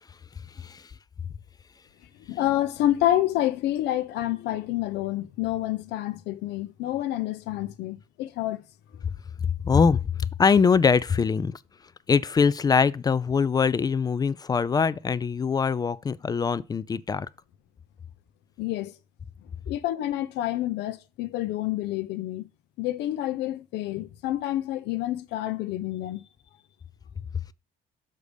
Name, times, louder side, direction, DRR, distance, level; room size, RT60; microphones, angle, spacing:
voice 1, 2.3-8.6 18.6-18.9 19.7-22.5 22.8-26.2, left 14 dB, 85° left, 0.6 m, -28 dB
voice 2, 9.6-11.6 12.1-17.3, left 5 dB, 25° left, 0.3 m, -23 dB
6.6 x 5.2 x 5.0 m
cardioid pair, 110°, 17 cm